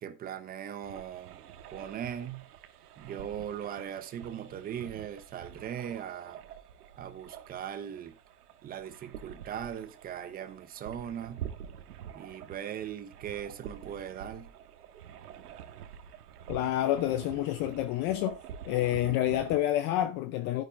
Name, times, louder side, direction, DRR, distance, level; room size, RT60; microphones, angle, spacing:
voice 1, 0.0-1.4 1.7-2.4 3.0-6.4 7.0-8.2 8.6-11.5 12.1-14.5, right 9 dB, 20° right, 0.9 m, -39 dB
sound 1, 0.8-19.6, right 9 dB, 70° right, 1.8 m, -47 dB
voice 2, 16.5-18.4 18.6-20.6, left 13 dB, 25° left, 0.5 m, -28 dB
12.0 x 9.9 x 2.5 m
hypercardioid pair, 130°, 47 cm